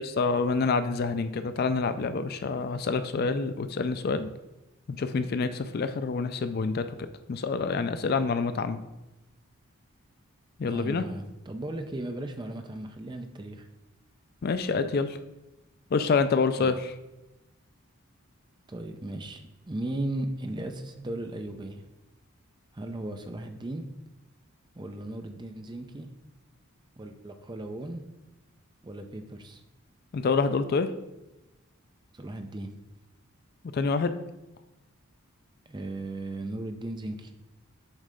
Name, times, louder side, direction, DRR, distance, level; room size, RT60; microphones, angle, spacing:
voice 1, 0.0-4.3 4.9-6.8 7.3-8.8 10.6-11.0 14.4-15.2 15.9-16.8 30.1-30.9 33.7-34.1, left 4 dB, 45° left, 11 dB, 0.3 m, -27 dB
voice 2, 10.7-13.7 16.6-16.8 18.7-19.4 19.7-21.8 22.7-23.9 24.8-26.1 27.0-28.0 28.8-29.6 32.1-32.7 35.7-37.3, right 1 dB, 20° right, 6 dB, 0.4 m, -36 dB
7.3 x 3.2 x 5.1 m, 1.0 s
head